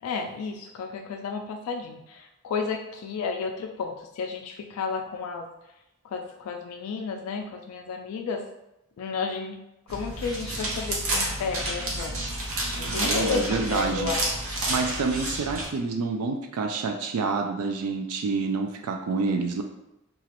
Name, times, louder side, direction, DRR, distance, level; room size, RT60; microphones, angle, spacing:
voice 1, 0.0-5.5 6.0-8.4 9.0-9.6 9.9-12.2 12.8-13.4 13.7-14.3, left 5 dB, 85° left, 3 dB, 0.3 m, -32 dB
sound 1, 9.9-15.7, right 1 dB, 65° right, 0.7 m, -30 dB
voice 2, 12.8-14.1 14.7-19.6, right 4 dB, 85° right, 4 dB, 0.3 m, -28 dB
2.9 x 2.4 x 2.9 m, 0.90 s
head